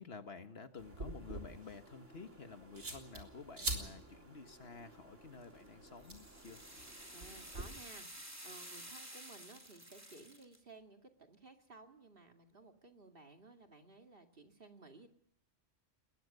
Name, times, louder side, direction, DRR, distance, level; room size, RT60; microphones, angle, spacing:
voice 1, 0.0-6.6, left 5 dB, 60° left, 9 dB, 1.6 m, -51 dB
sound 1, 0.8-7.6, right 2 dB, 90° right, 3.9 m, -46 dB
sound 2, 5.4-10.6, right 1 dB, 15° right, 2.9 m, -52 dB
voice 2, 7.1-15.1, right 3 dB, 50° right, 5 dB, 2.4 m, -57 dB
21.0 x 20.5 x 6.6 m, 0.70 s
omnidirectional pair, 1.2 m